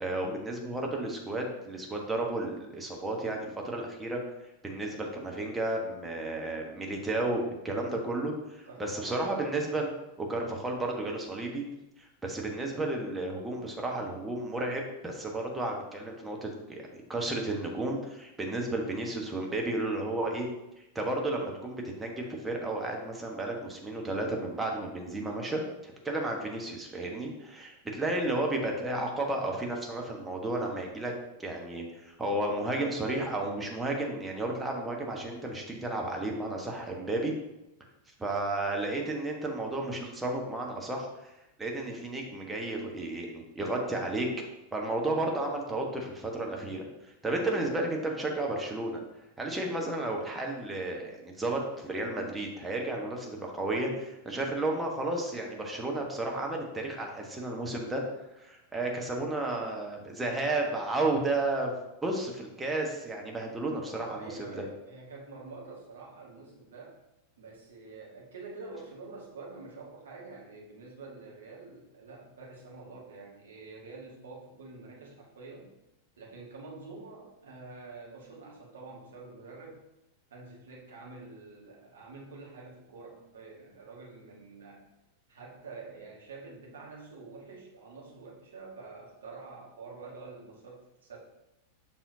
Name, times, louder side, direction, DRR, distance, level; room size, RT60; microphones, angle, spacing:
voice 1, 0.0-4.2 4.6-9.9 10.2-11.6 12.0-20.5 20.8-31.1 31.4-37.3 38.2-41.3 41.6-44.3 44.7-49.0 49.4-58.0 58.3-61.7 62.0-64.6, right 2 dB, 10° right, 0 dB, 1.3 m, -33 dB
voice 2, 8.6-9.3 63.3-63.4 64.1-67.0 67.4-75.7 76.2-79.8 80.3-84.9 85.3-91.2, right 3 dB, 65° right, -2 dB, 1.8 m, -47 dB
7.2 x 5.6 x 2.8 m, 0.92 s
figure-of-eight pair, 90°, 0 cm